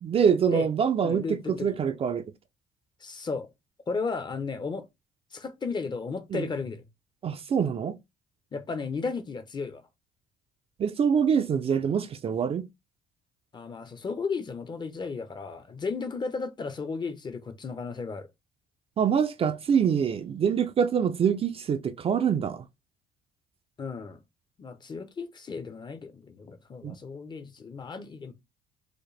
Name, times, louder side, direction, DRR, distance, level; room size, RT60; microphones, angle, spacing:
voice 1, 0.0-1.2 1.6-2.2 6.3-6.4 7.2-8.0 10.8-12.7 19.0-22.6 26.8-27.0, right 7 dB, 35° right, 0.4 m, -25 dB
voice 2, 1.0-1.8 3.0-3.5 3.9-4.9 5.3-6.8 8.5-9.8 13.5-18.3 23.8-24.2 24.6-28.3, left 4 dB, 25° left, 0.6 m, -34 dB
4.8 x 2.1 x 3.1 m
cardioid pair, 110°, 17 cm